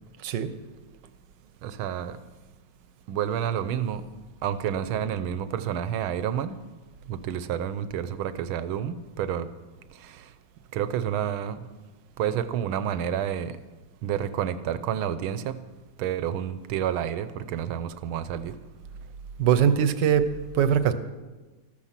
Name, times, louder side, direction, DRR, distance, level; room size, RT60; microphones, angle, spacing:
voice 1, 0.2-0.5 19.4-20.9, right 8 dB, 65° right, 1.4 m, -22 dB
voice 2, 1.6-2.2 3.1-4.0 4.4-6.6 7.1-9.5 10.0-10.2 10.7-11.6 12.2-13.6 14.0-15.6 16.0-18.6, right 9 dB, 80° right, 1.6 m, -29 dB
14.0 x 14.0 x 5.9 m
omnidirectional pair, 2.3 m